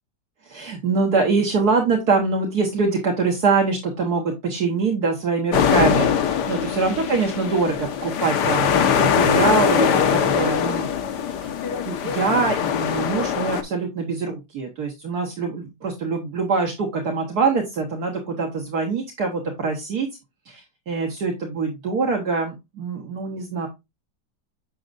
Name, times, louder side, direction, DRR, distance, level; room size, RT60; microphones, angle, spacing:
voice 1, 0.4-10.9 11.2-11.5 11.9-20.1 20.5-23.7, right 4 dB, 65° right, 1 dB, 1.8 m, -24 dB
sound 1, 5.5-13.6, left 7 dB, 75° left, 1.5 m, -22 dB
7.7 x 6.4 x 2.5 m, 0.22 s
omnidirectional pair, 1.9 m